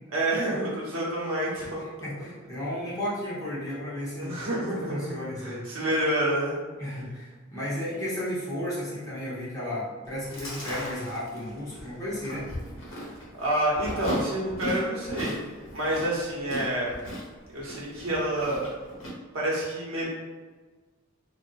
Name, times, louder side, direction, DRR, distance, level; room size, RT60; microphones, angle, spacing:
voice 1, 0.1-1.8 4.1-6.5 13.4-15.3 15.7-16.9 17.5-18.7 19.3-20.1, right 1 dB, 90° right, -6 dB, 0.9 m, -28 dB
voice 2, 2.0-4.4 4.9-5.7 6.8-12.5, left 1 dB, 15° left, -9 dB, 0.8 m, -33 dB
Chewing mastication, 10.1-19.1, equal, 65° left, 0.8 m, -38 dB
2.5 x 2.4 x 2.3 m, 1.4 s
head